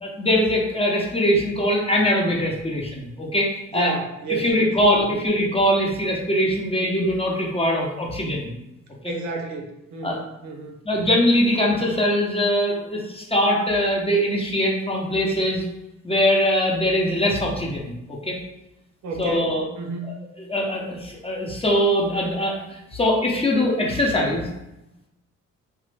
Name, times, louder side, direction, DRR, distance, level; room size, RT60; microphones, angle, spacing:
voice 1, 0.0-3.9 4.4-8.5 9.0-9.1 10.0-10.2 10.8-15.6 16.0-18.4 19.2-19.6 20.5-24.5, equal, 20° left, -2 dB, 0.7 m, -22 dB
voice 2, 3.7-5.2 9.0-10.8 19.0-20.2, right 3 dB, 70° right, 2 dB, 0.6 m, -31 dB
3.0 x 2.1 x 3.3 m, 0.90 s
cardioid pair, 90°, 30 cm